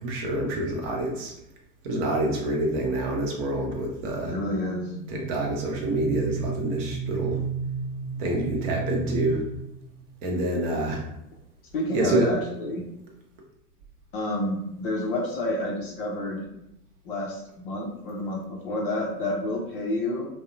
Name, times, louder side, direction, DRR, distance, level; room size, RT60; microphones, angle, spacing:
voice 1, 0.0-1.3 1.8-4.4 5.1-7.4 8.2-9.5 10.2-11.0 11.9-12.3, right 1 dB, 40° right, 0 dB, 0.6 m, -27 dB
voice 2, 4.2-4.9 11.7-12.8 14.1-16.5 17.0-20.3, left 1 dB, 35° left, -1 dB, 0.4 m, -29 dB
sound 1, 4.6-10.1, right 6 dB, 85° right, 0.7 m, -33 dB
2.5 x 2.0 x 2.4 m, 0.82 s
hypercardioid pair, 105°, 48 cm